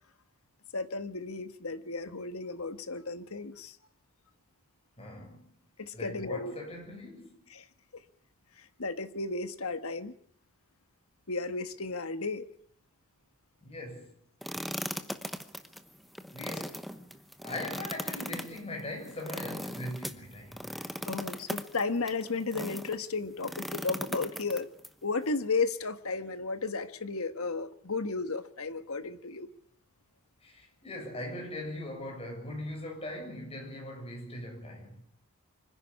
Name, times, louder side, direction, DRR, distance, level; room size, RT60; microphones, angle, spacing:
voice 1, 0.7-3.8 5.8-6.5 7.5-7.6 8.8-10.1 11.3-12.5 21.1-24.7 25.0-29.5, left 3 dB, 75° left, 1.5 m, -34 dB
voice 2, 5.0-5.5 5.9-7.3 13.6-14.1 16.3-16.8 17.4-20.7 30.4-35.0, left 1 dB, 25° left, 7.0 m, -40 dB
sound 1, 14.4-23.0 23.4-24.9, equal, ahead, 0.9 m, -38 dB
25.0 x 11.0 x 9.9 m
head